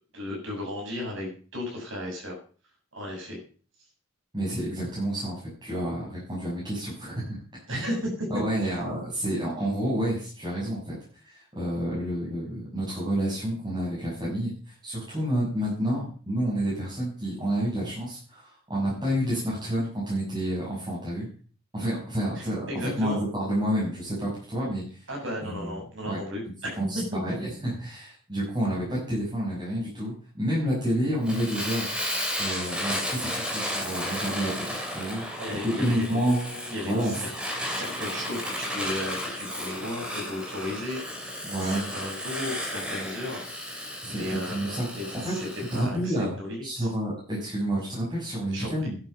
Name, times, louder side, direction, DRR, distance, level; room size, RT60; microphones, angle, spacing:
voice 1, 0.1-2.4 2.9-3.4 7.7-8.3 22.7-23.2 25.1-26.8 27.2-27.3 35.4-36.9 37.2-37.3 37.6-43.8 44.1-45.5 45.7-46.9 48.5-48.7, left 1 dB, 65° right, 0 dB, 7.8 m, -35 dB
voice 2, 4.3-7.4 7.7-7.9 8.3-21.3 21.7-25.0 25.4-25.7 26.0-26.2 26.7-34.7 34.9-35.2 35.6-36.4 36.8-37.2 41.4-41.8 44.0-44.9 45.2-45.3 45.7-46.3 46.6-49.0, right 1 dB, 20° right, -7 dB, 6.8 m, -29 dB
Fire, 31.2-45.9, equal, 5° right, 3.0 m, -33 dB
11.5 x 11.0 x 6.7 m, 0.41 s
head